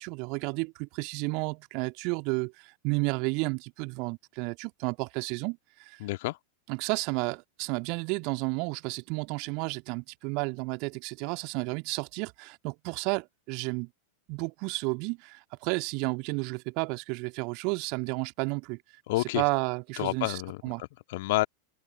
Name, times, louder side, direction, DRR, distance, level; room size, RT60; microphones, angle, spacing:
voice 1, 0.0-6.0 6.7-13.9 14.3-18.8 19.3-20.8, right 32 dB, 45° right, 1.9 m, -32 dB
voice 2, 6.0-6.4 19.1-19.4 20.0-21.5, left 19 dB, 50° left, 2.0 m, -29 dB
figure-of-eight pair, 90°, 0 cm